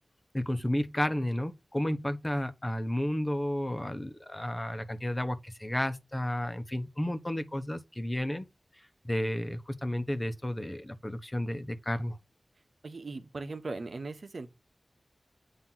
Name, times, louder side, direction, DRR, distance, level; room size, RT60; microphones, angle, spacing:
voice 1, 0.3-8.5 9.0-12.2, left 1 dB, 25° left, 1.0 m, -32 dB
voice 2, 12.8-14.5, right 3 dB, 75° right, 1.1 m, -39 dB
7.6 x 2.9 x 5.7 m
wide cardioid pair, 45°, 0 cm